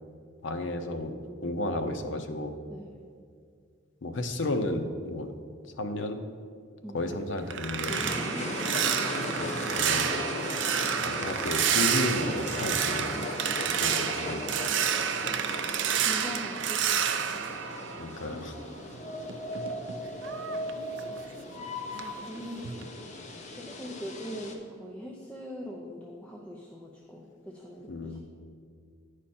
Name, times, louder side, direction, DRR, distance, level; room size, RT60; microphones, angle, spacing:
voice 1, 0.4-1.1 1.4-2.5 4.0-5.3 5.8-6.2 6.9-8.0 9.4-9.5 9.8-10.1 11.0-13.2 13.7-14.5 18.0-18.5 27.9-28.2, left 2 dB, 85° left, 7 dB, 0.7 m, -33 dB
voice 2, 6.8-7.2 7.9-9.0 16.0-17.5 18.3-18.8 22.3-22.7 23.6-28.2, equal, 5° left, -2 dB, 0.6 m, -42 dB
sound 1, 7.0-18.6 18.9-21.6 21.9-22.3 22.6-22.9, right 8 dB, 70° right, 0.4 m, -30 dB
sound 2, 7.9-24.5, left 1 dB, 40° left, 0.8 m, -37 dB
9.7 x 4.9 x 4.2 m, 2.2 s
head